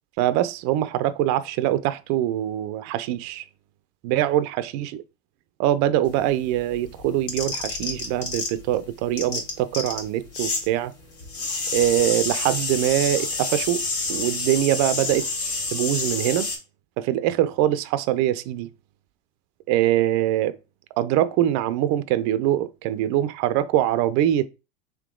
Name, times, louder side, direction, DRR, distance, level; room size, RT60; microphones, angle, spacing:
voice 1, 0.2-3.4 4.0-5.0 5.6-10.9 11.7-13.8 14.1-15.3 15.7-16.5 17.0-18.7 19.7-20.6 21.0-24.5, right 13 dB, 60° right, 0.5 m, -23 dB
sound 1, 6.1-8.7 9.0-10.7 10.9-16.6, left 3 dB, 70° left, 2.1 m, -28 dB
3.6 x 2.7 x 3.7 m
hypercardioid pair, 95°, 32 cm